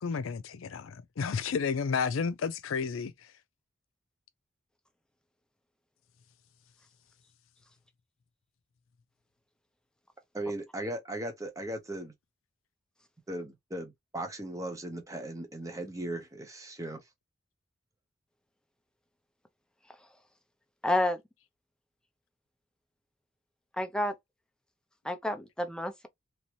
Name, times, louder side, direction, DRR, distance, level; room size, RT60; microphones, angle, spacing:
voice 1, 0.0-3.1, left 5 dB, 80° left, 0.4 m, -31 dB
voice 2, 10.3-12.1 13.3-17.0, right 1 dB, 15° right, 0.8 m, -37 dB
voice 3, 20.8-21.2 23.8-24.1 25.0-26.1, left 1 dB, 5° left, 0.5 m, -29 dB
3.0 x 2.7 x 2.9 m
head